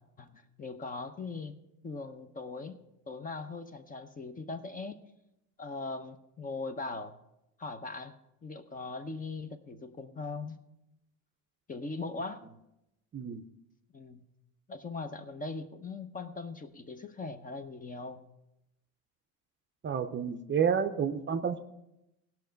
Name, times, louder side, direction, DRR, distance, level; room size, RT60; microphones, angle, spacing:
voice 1, 0.2-1.6 1.8-2.8 3.1-5.0 5.6-7.1 7.6-8.2 8.4-10.6 11.7-12.4 13.9-14.2 14.7-18.2, left 3 dB, 20° left, 9 dB, 0.7 m, -40 dB
voice 2, 13.1-13.4 19.8-21.7, right 7 dB, 30° right, 9 dB, 0.6 m, -30 dB
16.5 x 5.9 x 5.1 m, 0.88 s
supercardioid pair, 100°, 40 cm